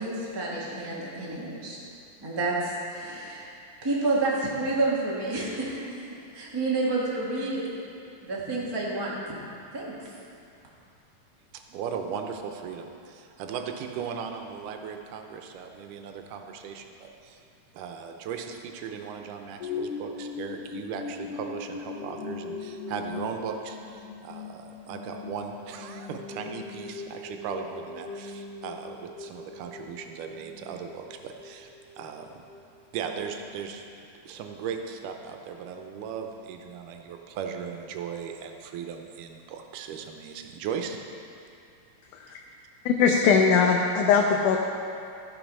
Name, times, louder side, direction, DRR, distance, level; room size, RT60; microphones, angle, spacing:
voice 1, 0.0-1.8 2.2-3.5 3.8-6.0 6.3-7.7 8.2-9.2 9.7-9.9, right 2 dB, 40° right, -5 dB, 0.3 m, -29 dB
voice 2, 11.5-17.4 17.7-32.4 32.9-33.8 34.3-41.0 42.3-42.4, right 7 dB, 85° right, 4 dB, 2.3 m, -37 dB
sound 1, 19.6-33.1 33.6-33.7, left 5 dB, 60° left, 2.1 m, -40 dB
voice 3, 42.9-44.6, left 6 dB, 80° left, 0 dB, 2.1 m, -20 dB
14.0 x 5.5 x 5.4 m, 2.5 s
omnidirectional pair, 3.6 m